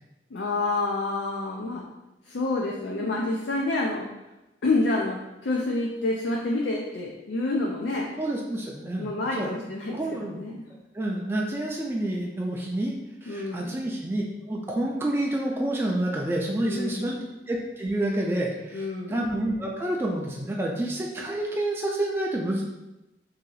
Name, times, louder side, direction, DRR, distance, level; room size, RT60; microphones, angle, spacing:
voice 1, 0.3-1.8 2.2-4.1 4.6-8.1 9.0-10.7 13.3-13.8 16.7-17.3 18.7-19.2, left 2 dB, 85° left, -2 dB, 0.4 m, -28 dB
voice 2, 8.2-9.5 9.9-10.4 10.9-12.9 13.2-17.1 17.5-22.6, right 1 dB, 15° right, -2 dB, 0.3 m, -28 dB
2.9 x 2.7 x 3.9 m, 0.97 s
head